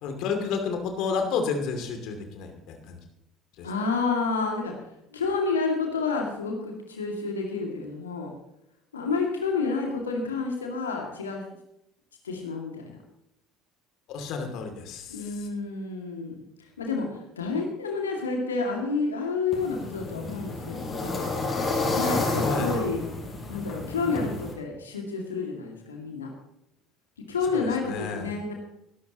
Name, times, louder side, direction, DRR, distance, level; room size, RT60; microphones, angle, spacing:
voice 1, 0.0-3.0 3.6-3.7 14.1-15.5 22.4-22.7 27.5-28.3, left 5 dB, 55° left, 4 dB, 2.6 m, -31 dB
voice 2, 3.6-4.7 5.1-8.3 8.9-11.4 12.2-13.0 15.1-17.1 17.3-21.3 21.9-23.0 23.5-26.3 27.3-28.5, left 4 dB, 80° left, 1 dB, 2.2 m, -29 dB
sound 1, 19.5-24.5, left 3 dB, 30° left, 5.2 m, -30 dB
20.5 x 11.5 x 3.0 m, 0.79 s
figure-of-eight pair, 60°, 0 cm